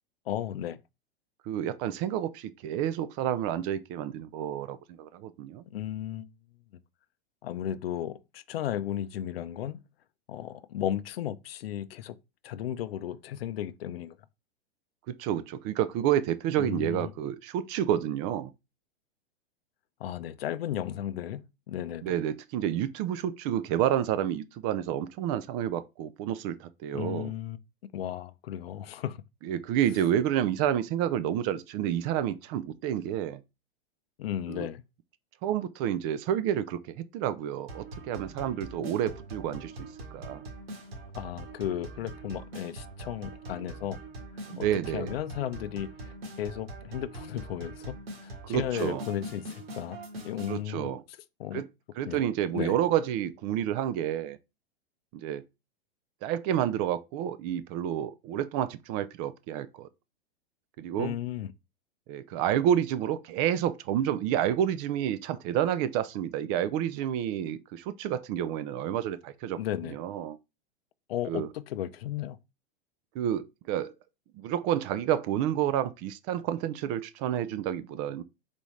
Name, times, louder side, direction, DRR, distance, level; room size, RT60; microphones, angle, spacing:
voice 1, 0.3-0.8 5.7-6.3 7.4-9.8 10.3-12.2 12.4-14.1 16.6-17.1 20.0-22.1 26.9-27.6 27.9-29.2 34.2-34.8 41.1-44.0 44.6-44.7 44.9-48.0 48.2-50.0 50.2-50.9 51.4-51.6 52.0-52.2 52.5-52.8 61.0-61.5 69.6-69.9 71.1-72.4, left 11 dB, 70° left, 0.5 m, -34 dB
voice 2, 1.5-5.6 15.1-18.5 22.0-27.3 29.4-33.4 34.5-34.7 35.4-39.7 40.1-40.4 44.5-45.1 48.5-49.0 50.5-51.0 51.5-51.7 52.0-54.4 55.2-55.4 56.2-59.9 60.8-61.2 62.1-69.6 69.9-70.4 71.3-71.5 73.2-73.9 74.4-78.2, right 10 dB, 35° right, 0.4 m, -29 dB
sound 1, 37.7-50.6, right 2 dB, 70° right, 1.6 m, -43 dB
4.1 x 3.5 x 3.1 m
hypercardioid pair, 110°, 31 cm